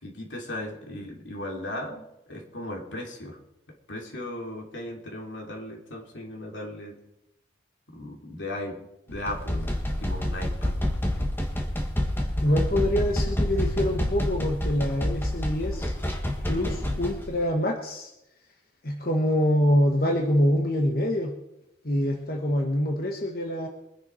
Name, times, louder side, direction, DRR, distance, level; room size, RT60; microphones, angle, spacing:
voice 1, 0.0-3.4 3.7-7.0 7.9-8.8 9.1-9.7 10.0-10.8, left 1 dB, 80° left, 1 dB, 2.9 m, -37 dB
sound 1, 9.1-17.3, left 1 dB, 10° left, 1.5 m, -28 dB
voice 2, 12.4-15.9 16.5-18.1 18.8-21.3 21.8-23.7, equal, 50° left, 1 dB, 1.4 m, -25 dB
23.5 x 10.5 x 4.5 m, 0.88 s
head